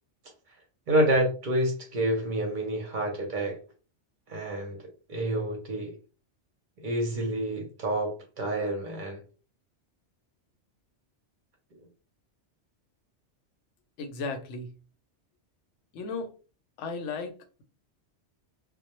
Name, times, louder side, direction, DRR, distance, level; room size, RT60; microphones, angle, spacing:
voice 1, 0.9-3.6 4.3-5.9 6.8-9.2, right 1 dB, 50° right, 0.7 m, -28 dB
voice 2, 14.0-14.7 15.9-16.3 16.8-17.6, left 4 dB, 85° left, 0.9 m, -35 dB
2.1 x 2.0 x 2.9 m
omnidirectional pair, 1.2 m